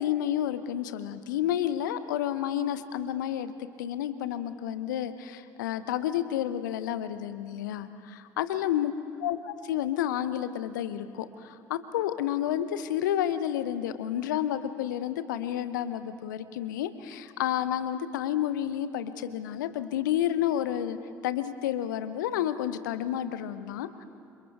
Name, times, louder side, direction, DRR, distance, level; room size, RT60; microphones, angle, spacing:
voice 1, 0.0-8.9 9.2-21.0 21.2-24.0, left 11 dB, 70° left, 12 dB, 0.8 m, -30 dB
29.5 x 27.0 x 3.5 m, 2.5 s
figure-of-eight pair, 55°, 11 cm